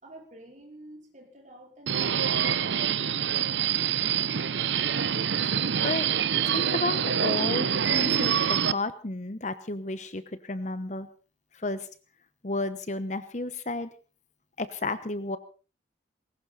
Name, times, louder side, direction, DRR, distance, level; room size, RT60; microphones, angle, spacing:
voice 1, 0.0-4.7, right 1 dB, 40° right, 1 dB, 5.0 m, -50 dB
Subway metro underground, 1.9-8.7, right 8 dB, 75° right, 0.7 m, -26 dB
voice 2, 5.5-6.1 6.5-11.1 11.5-11.9 12.4-13.9 14.6-15.4, left 2 dB, 40° left, 13 dB, 1.0 m, -32 dB
20.0 x 17.5 x 4.1 m, 0.36 s
head